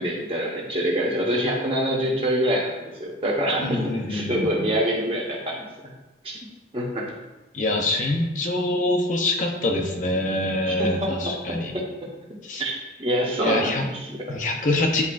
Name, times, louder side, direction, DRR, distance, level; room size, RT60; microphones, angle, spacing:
voice 1, 0.0-5.9 6.2-6.4 6.7-7.0 7.9-8.1 10.6-11.2 11.7-11.8 12.6-12.7 13.0-14.4, equal, 30° right, -2 dB, 1.1 m, -25 dB
voice 2, 3.6-4.5 7.5-11.7 12.5-12.6 13.4-13.9 14.3-15.0, left 2 dB, 45° left, 2 dB, 0.7 m, -25 dB
9.5 x 4.3 x 2.5 m, 1.0 s
head